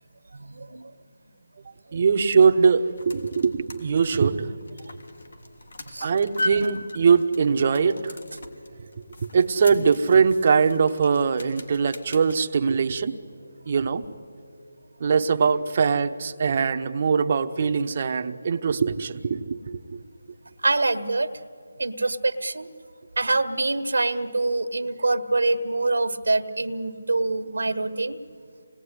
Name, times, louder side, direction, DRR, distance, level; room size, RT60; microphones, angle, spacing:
voice 1, 0.3-0.9 5.9-6.1 20.6-21.3 21.8-22.7 23.2-28.2, right 2 dB, 80° right, 10 dB, 1.4 m, -25 dB
sound 1, 1.9-12.4, left 1 dB, 70° left, 3.3 m, -39 dB
voice 2, 1.9-4.5 6.0-8.1 9.3-13.2 13.7-14.0 15.0-19.6 19.9-20.0, right 5 dB, 35° right, 7 dB, 1.0 m, -21 dB
27.5 x 19.5 x 9.9 m, 2.4 s
figure-of-eight pair, 165°, 0 cm